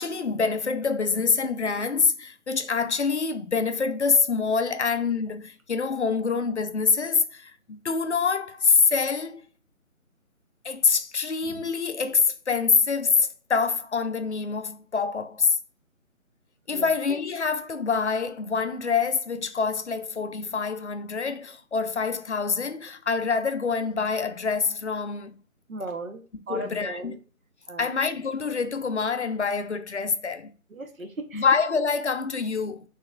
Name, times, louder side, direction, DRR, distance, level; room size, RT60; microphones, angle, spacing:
voice 1, 0.0-9.4 10.6-15.6 16.7-25.4 26.3-27.1 27.8-30.5 31.3-32.8, left 5 dB, 55° left, 0.5 m, -25 dB
voice 2, 25.7-27.2 27.7-27.9 30.7-31.4, right 2 dB, 70° right, 1.1 m, -37 dB
5.7 x 3.1 x 2.5 m
figure-of-eight pair, 155°, 42 cm